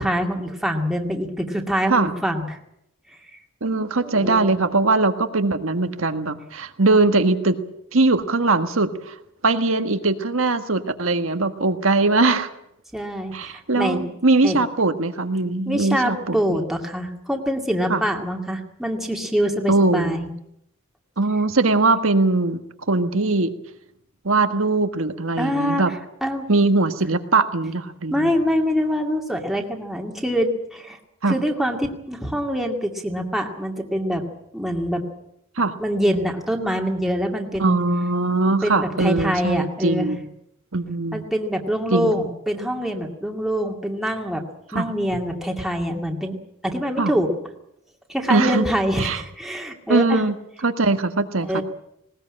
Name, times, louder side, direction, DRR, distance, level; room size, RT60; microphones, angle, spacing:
voice 1, 0.0-2.6 4.0-4.6 12.9-14.1 14.4-14.6 15.7-20.3 25.4-25.8 26.2-26.5 28.1-31.0 31.3-34.2 34.5-35.0 35.8-37.8 38.6-40.1 41.1-44.4 44.7-46.4 46.6-47.3 48.1-50.2 51.4-51.6, equal, ahead, 1 dB, 2.2 m, -24 dB
voice 2, 3.6-7.6 7.9-9.1 9.4-12.5 13.3-16.6 17.9-18.0 19.7-20.2 21.2-22.6 22.9-23.5 24.2-25.9 26.5-28.4 31.2-31.4 35.6-35.7 37.6-40.2 40.7-41.2 41.9-42.3 44.7-44.9 47.0-47.1 48.3-48.6 49.0-49.2 49.9-50.3 50.6-51.6, right 3 dB, 70° right, 9 dB, 1.6 m, -21 dB
19.5 x 19.0 x 8.7 m, 0.78 s
head